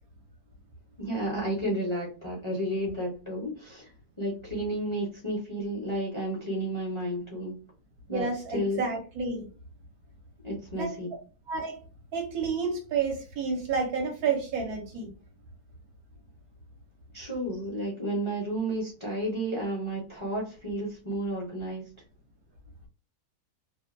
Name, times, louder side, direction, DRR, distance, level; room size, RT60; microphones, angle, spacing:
voice 1, 1.0-7.5 8.1-8.3 8.5-8.8 10.4-11.1 17.1-21.8, right 1 dB, 30° left, 0.6 m, -32 dB
voice 2, 8.1-9.5 10.8-10.9 11.5-11.8 12.1-15.1, right 5 dB, 75° right, 1.1 m, -30 dB
2.7 x 2.2 x 2.4 m
omnidirectional pair, 1.7 m